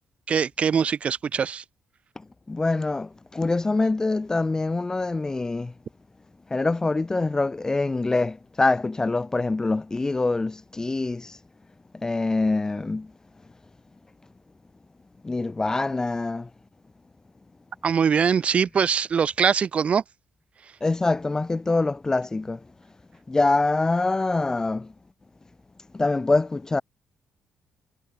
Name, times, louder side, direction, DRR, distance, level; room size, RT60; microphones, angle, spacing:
voice 1, 0.3-1.6 17.8-20.0, right 7 dB, 50° right, 1.6 m, -22 dB
voice 2, 2.2-5.7 6.5-11.4 11.9-13.1 15.2-16.5 20.8-22.7 23.3-24.9 25.9-26.8, left 3 dB, 25° left, 0.6 m, -25 dB
hypercardioid pair, 45°, 3 cm